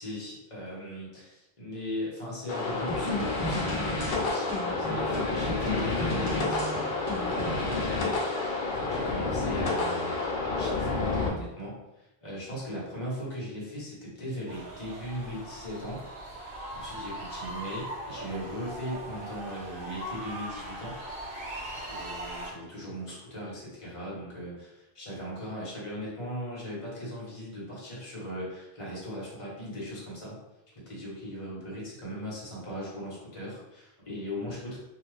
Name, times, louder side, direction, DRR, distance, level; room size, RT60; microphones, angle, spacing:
voice 1, 0.0-6.6 7.3-8.2 8.8-16.1 16.4-21.0 21.7-30.4 30.8-34.8, equal, 35° left, -6 dB, 1.0 m, -38 dB
sound 1, 2.5-11.3, left 3 dB, 70° left, 0.8 m, -29 dB
sound 2, 2.9-7.9, equal, 35° right, 1.1 m, -35 dB
sound 3, 14.5-22.5, right 1 dB, 60° right, 1.0 m, -40 dB
2.6 x 2.4 x 3.2 m, 0.96 s
omnidirectional pair, 1.0 m